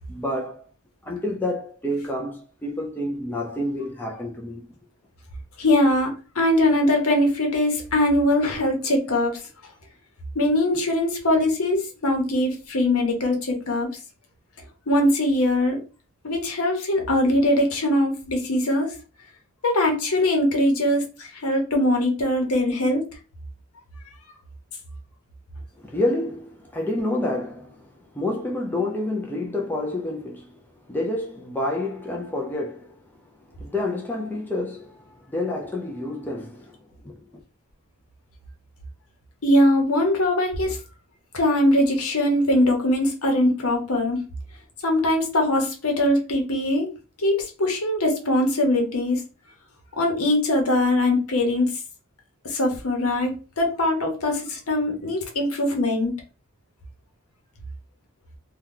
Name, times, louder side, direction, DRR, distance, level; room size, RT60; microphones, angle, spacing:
voice 1, 0.1-0.7 1.0-4.7 25.8-27.9 28.1-30.6 30.9-33.0 33.6-36.8 37.0-37.2, left 1 dB, 10° left, 0.4 m, -28 dB
voice 2, 5.6-9.4 10.3-13.9 14.9-15.8 16.2-18.9 19.6-23.0 39.4-40.8 41.3-44.2 44.8-46.9 47.2-49.2 50.0-51.8 52.4-56.1, left 1 dB, 75° left, 1.0 m, -21 dB
2.8 x 2.3 x 3.6 m
head